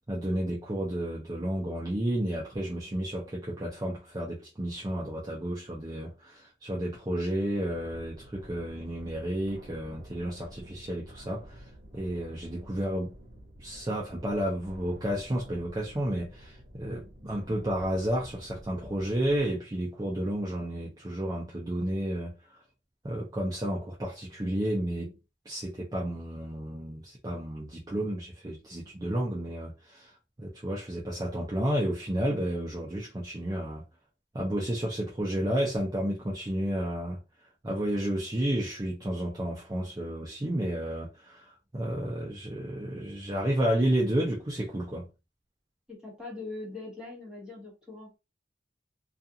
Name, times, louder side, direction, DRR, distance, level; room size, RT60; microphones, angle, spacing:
voice 1, 0.1-13.1 13.6-22.3 23.0-25.2 25.5-30.1 30.4-33.8 34.3-37.2 37.6-45.1, right 1 dB, 20° right, 0.5 m, -31 dB
sound 1, 7.6-19.5, equal, 60° right, 0.8 m, -50 dB
voice 2, 45.9-48.2, left 3 dB, 5° right, 1.1 m, -41 dB
2.4 x 2.4 x 2.7 m
head